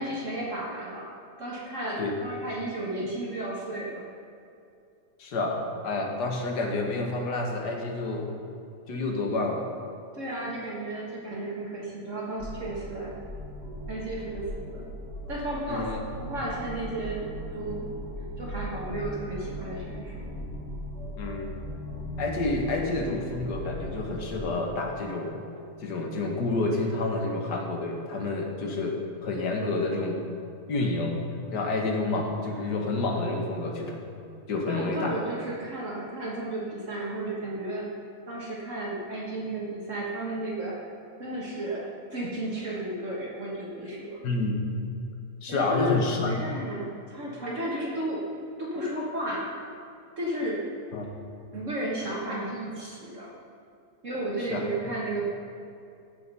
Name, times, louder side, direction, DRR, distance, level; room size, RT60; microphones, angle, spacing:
voice 1, 0.0-4.0 10.1-13.2 13.9-14.9 15.3-15.9 16.2-17.9 18.4-20.3 34.7-37.9 38.3-40.8 41.2-44.2 45.5-45.9 46.2-48.3 48.6-49.5 50.2-50.7 51.5-53.3 54.0-55.2, right 1 dB, 50° right, -4 dB, 1.8 m, -33 dB
voice 2, 5.2-8.3 8.9-9.6 15.7-16.0 21.2-21.7 22.2-25.4 25.8-30.2 30.7-31.2 31.5-34.0 34.5-35.2 44.2-44.7 45.4-46.3 50.9-51.1 54.5-54.6, left 2 dB, 80° left, 1 dB, 2.0 m, -29 dB
sound 1, 12.4-24.5, equal, 50° left, 2.8 m, -38 dB
16.0 x 5.9 x 5.4 m, 2.6 s
omnidirectional pair, 1.7 m